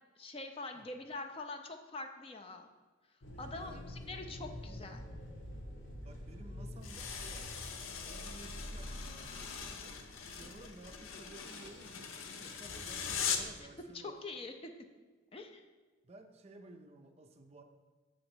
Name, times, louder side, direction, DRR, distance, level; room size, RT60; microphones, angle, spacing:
voice 1, 0.2-2.7 3.4-5.0 10.4-10.5 14.0-14.7 15.3-15.6, left 2 dB, 25° left, 5 dB, 0.4 m, -44 dB
sound 1, 3.2-13.3, equal, 65° left, 1.1 m, -48 dB
voice 2, 3.3-3.9 6.0-7.5 8.0-10.0 10.3-14.2 16.0-17.6, right 2 dB, 30° right, 6 dB, 0.4 m, -55 dB
sound 2, 6.8-13.6, left 7 dB, 85° left, 0.6 m, -41 dB
6.2 x 3.8 x 6.1 m, 1.3 s
head